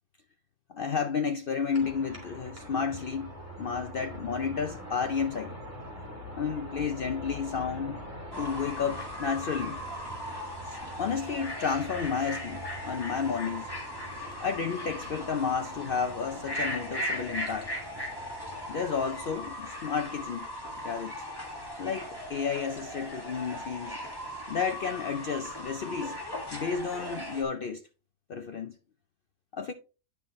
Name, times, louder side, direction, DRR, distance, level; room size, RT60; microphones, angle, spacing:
voice 1, 0.7-3.3 3.6-5.6 6.3-8.0 8.4-9.8 10.7-13.7 14.4-17.7 18.7-20.5 20.8-21.1 21.8-24.0 24.5-26.2 26.5-27.8 28.3-28.7 29.5-29.7, left 6 dB, 80° left, 0.5 m, -31 dB
sound 1, 1.7-19.7, equal, 10° right, 2.6 m, -44 dB
Fowl / Bird, 8.3-27.4, left 1 dB, 15° left, 2.0 m, -38 dB
9.5 x 5.7 x 3.1 m
omnidirectional pair, 1.6 m